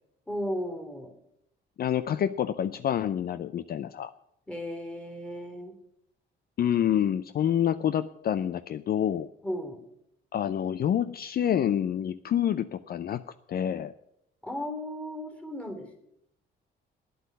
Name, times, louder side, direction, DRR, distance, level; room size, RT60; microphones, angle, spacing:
voice 1, 0.3-1.1 4.5-5.7 9.4-9.8 14.4-16.0, equal, 5° left, 5 dB, 3.0 m, -35 dB
voice 2, 1.8-4.1 6.6-9.3 10.3-13.2 13.5-13.9, left 10 dB, 50° left, 13 dB, 0.5 m, -27 dB
9.4 x 8.0 x 9.5 m, 0.78 s
cardioid pair, 90°, 20 cm